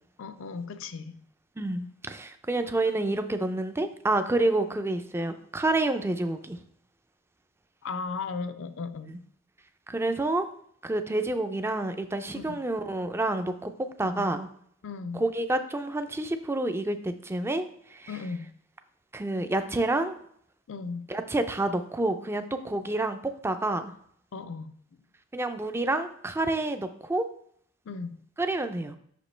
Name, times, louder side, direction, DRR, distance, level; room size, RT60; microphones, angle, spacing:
voice 1, 0.2-1.2 7.8-9.2 12.3-12.6 14.0-14.3 14.8-15.2 18.1-18.5 20.7-21.1 24.3-24.7 27.9-28.2, left 4 dB, 65° left, 11 dB, 0.5 m, -36 dB
voice 2, 1.6-6.6 9.1-9.2 9.9-10.5 10.8-13.7 14.0-14.5 15.1-17.6 17.9-18.1 19.1-20.2 21.1-23.2 23.4-23.9 25.3-27.3 28.4-29.0, right 2 dB, 10° right, 8 dB, 0.4 m, -28 dB
6.1 x 5.0 x 3.2 m, 0.63 s
head